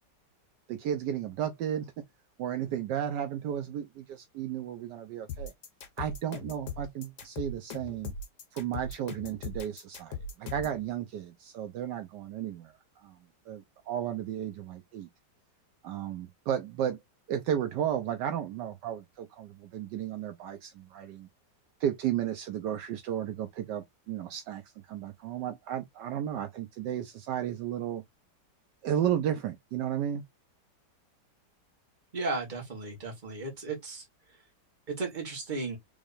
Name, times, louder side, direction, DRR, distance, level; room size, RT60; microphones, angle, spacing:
voice 1, 0.7-1.9 2.4-5.5 6.0-8.1 8.5-13.2 13.5-15.1 15.8-17.0 17.3-21.3 21.8-28.0 28.8-30.2, right 10 dB, 75° right, 1.2 m, -33 dB
sound 1, 5.3-10.8, left 4 dB, 65° left, 1.6 m, -39 dB
voice 2, 32.1-34.0 34.9-35.8, right 3 dB, 25° right, 1.5 m, -35 dB
3.6 x 3.4 x 2.5 m
omnidirectional pair, 1.9 m